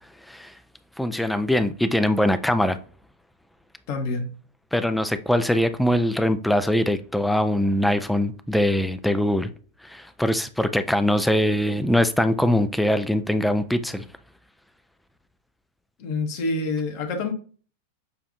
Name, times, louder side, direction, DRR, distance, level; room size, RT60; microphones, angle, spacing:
voice 1, 1.0-2.8 4.7-9.5 9.8-14.0, left 1 dB, 5° left, 0.3 m, -22 dB
voice 2, 3.9-4.3 16.0-17.3, left 3 dB, 45° left, 1.0 m, -27 dB
6.8 x 2.5 x 2.6 m
figure-of-eight pair, 90°, 0 cm